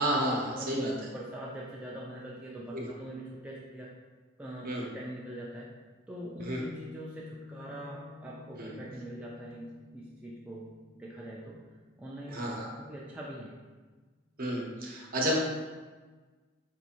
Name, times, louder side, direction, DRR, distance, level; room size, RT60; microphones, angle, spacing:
voice 1, 0.0-0.9 2.7-2.9 4.6-4.9 6.4-6.6 8.6-8.7 12.3-12.7 14.4-15.3, right 1 dB, 50° right, -2 dB, 0.8 m, -31 dB
voice 2, 1.1-3.9 4.4-5.7 6.1-11.6 12.0-12.3 12.8-13.6, right 1 dB, 5° right, -5 dB, 0.3 m, -43 dB
Piano, 6.5-13.2, left 5 dB, 65° left, 0.5 m, -52 dB
4.4 x 2.5 x 2.8 m, 1.3 s
head